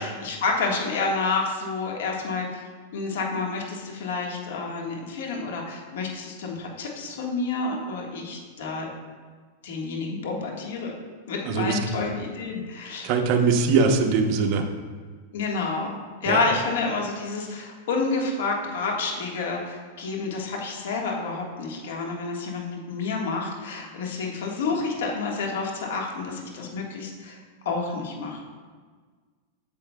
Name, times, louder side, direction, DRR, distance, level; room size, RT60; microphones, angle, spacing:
voice 1, 0.0-2.5 2.9-8.9 9.6-10.9 11.3-13.1 15.3-15.9 16.2-27.4 27.6-28.4, left 4 dB, 75° left, 0 dB, 1.5 m, -29 dB
voice 2, 11.5-11.8 13.0-14.6 16.3-16.4, right 5 dB, 45° right, 4 dB, 0.8 m, -21 dB
8.6 x 7.2 x 2.3 m, 1.5 s
supercardioid pair, 140°, 0 cm